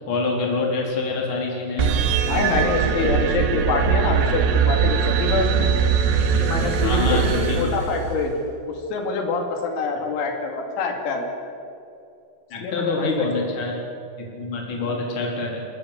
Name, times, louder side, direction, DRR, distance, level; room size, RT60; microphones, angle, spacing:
voice 1, 0.1-2.0 6.8-7.6 12.5-13.8 14.2-15.7, left 3 dB, 25° left, -1 dB, 4.0 m, -26 dB
sound 1, 1.8-8.4, right 7 dB, 75° right, 4.3 m, -21 dB
voice 2, 2.3-5.7 6.4-8.3 8.7-11.3 12.6-13.3 14.7-15.0, left 4 dB, 85° left, 3 dB, 5.2 m, -26 dB
29.5 x 14.5 x 8.3 m, 2.6 s
omnidirectional pair, 6.0 m